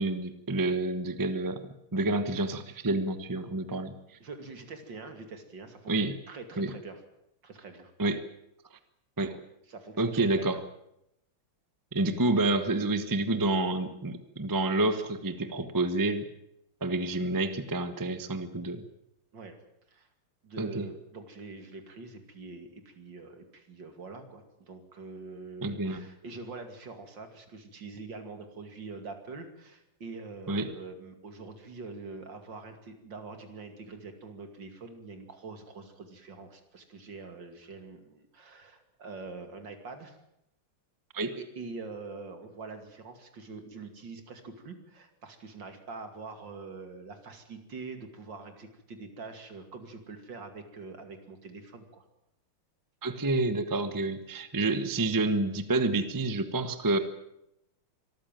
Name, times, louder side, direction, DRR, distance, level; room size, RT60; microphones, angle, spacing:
voice 1, 0.0-3.9 5.9-6.2 6.6-6.7 8.0-8.2 9.2-9.4 10.0-10.6 11.9-16.3 16.8-18.8 20.6-20.9 25.6-26.0 30.5-30.7 41.1-41.3 53.0-57.0, right 2 dB, 15° right, 10 dB, 0.7 m, -28 dB
voice 2, 4.2-7.0 7.4-7.9 9.7-10.6 19.3-19.6 19.9-20.1 20.4-40.2 41.4-52.0, right 4 dB, 60° right, 7 dB, 3.1 m, -44 dB
24.0 x 14.0 x 9.1 m, 0.82 s
omnidirectional pair, 2.3 m